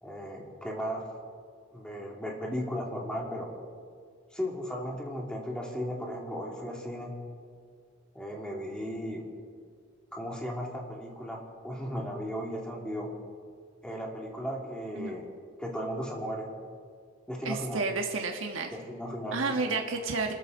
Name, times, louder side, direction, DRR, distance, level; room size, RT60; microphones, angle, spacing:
voice 1, 0.0-1.0 1.7-3.5 4.3-7.1 8.1-9.2 10.1-13.1 13.8-15.3 15.6-16.5 17.3-17.8 18.7-19.7, equal, 5° left, -2 dB, 2.7 m, -36 dB
voice 2, 17.4-18.7 19.3-20.3, right 3 dB, 70° right, 3 dB, 1.4 m, -31 dB
27.5 x 13.0 x 4.0 m, 2.1 s
head